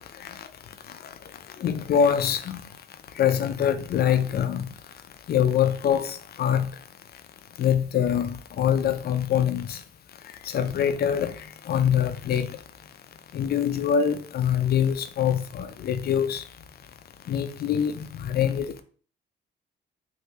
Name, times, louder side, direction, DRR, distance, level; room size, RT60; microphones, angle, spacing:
voice 1, 1.6-2.6 3.2-4.6 5.3-6.1 6.4-6.7 7.6-9.8 10.5-11.3 11.7-12.5 13.3-16.4 17.3-17.9 18.2-18.6, left 8 dB, 50° left, 0.5 m, -24 dB
3.2 x 2.7 x 2.8 m
cardioid pair, 90°, 20 cm